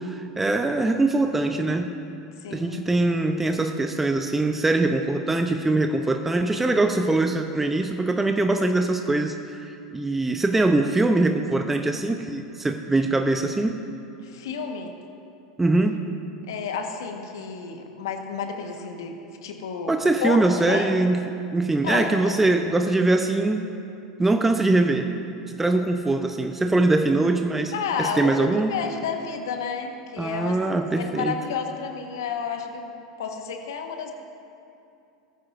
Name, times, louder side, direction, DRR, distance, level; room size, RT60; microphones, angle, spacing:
voice 1, 0.0-1.9 2.5-13.8 15.6-16.0 19.9-23.7 24.2-25.1 25.5-27.7 28.0-28.7 30.2-31.3, right 2 dB, 10° right, 5 dB, 0.7 m, -22 dB
voice 2, 2.4-2.9 14.2-14.9 16.5-19.9 20.2-20.4 20.7-20.9 21.8-22.4 27.7-30.6 30.9-34.1, left 6 dB, 70° left, 4 dB, 1.5 m, -31 dB
19.0 x 14.5 x 2.6 m, 2.6 s
figure-of-eight pair, 85°, 2 cm